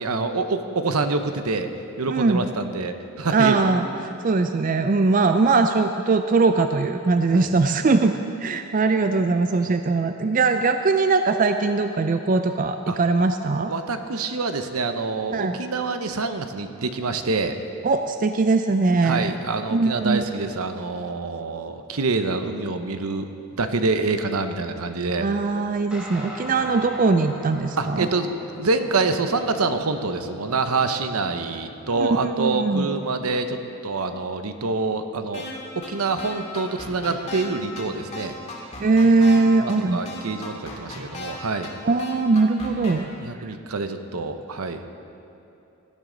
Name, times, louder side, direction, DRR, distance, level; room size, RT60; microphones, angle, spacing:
voice 1, 0.0-1.7 2.0-3.6 7.3-7.5 9.6-9.8 12.9-13.0 13.7-17.6 19.0-23.3 23.6-25.3 27.8-33.6 33.8-35.5 35.8-38.3 39.3-41.7 43.2-44.9, right 3 dB, 75° right, 8 dB, 0.8 m, -26 dB
voice 2, 2.1-2.5 3.3-8.1 8.4-13.7 15.3-15.6 17.8-19.3 19.7-20.2 25.2-28.1 32.0-32.9 38.8-40.0 41.8-43.0, right 3 dB, 35° right, 7 dB, 0.4 m, -21 dB
Guitar, 25.9-33.6, equal, 5° right, 1.7 m, -43 dB
sound 1, 35.3-35.5 35.8-35.9 36.2-37.5 37.8-37.9 38.1-39.4 39.7-39.8 40.1-41.3 41.6-41.7 42.0-42.9, left 3 dB, 30° left, 2.3 m, -36 dB
18.0 x 12.5 x 3.9 m, 2.8 s
head